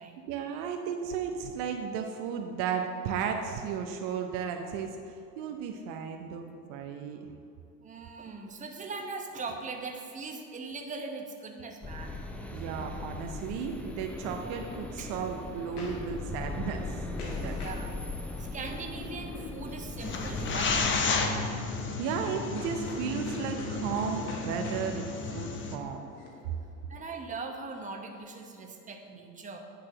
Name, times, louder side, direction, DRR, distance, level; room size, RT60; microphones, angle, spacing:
voice 1, 0.3-7.3 12.5-17.6 21.8-26.0, right 6 dB, 50° right, 4 dB, 0.8 m, -34 dB
voice 2, 7.8-12.2 15.0-15.1 17.5-18.0 18.4-21.2 26.9-29.6, right 3 dB, 15° right, 3 dB, 0.9 m, -40 dB
sound 1, 11.8-21.1, left 2 dB, 5° left, 0.5 m, -39 dB
sound 2, 14.6-27.1, left 2 dB, 70° left, 1.5 m, -45 dB
sound 3, 20.0-25.8, left 4 dB, 25° left, 0.8 m, -32 dB
9.0 x 4.1 x 6.4 m, 2.5 s
hypercardioid pair, 85°, 48 cm